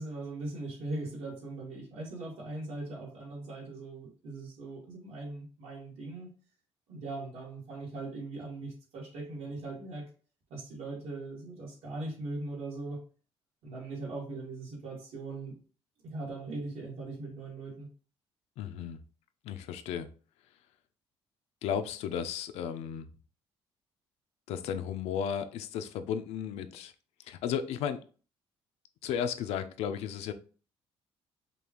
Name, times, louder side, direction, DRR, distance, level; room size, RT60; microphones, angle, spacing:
voice 1, 0.0-6.3 6.9-10.1 10.5-13.0 13.6-15.5 16.0-17.9, right 2 dB, 75° right, -2 dB, 1.8 m, -40 dB
voice 2, 18.6-19.0 19.4-20.1 21.6-23.1 24.5-26.9 27.3-28.0 29.0-30.3, left 8 dB, 90° left, 10 dB, 0.4 m, -34 dB
5.1 x 2.3 x 3.0 m, 0.38 s
cardioid pair, 130°, 10 cm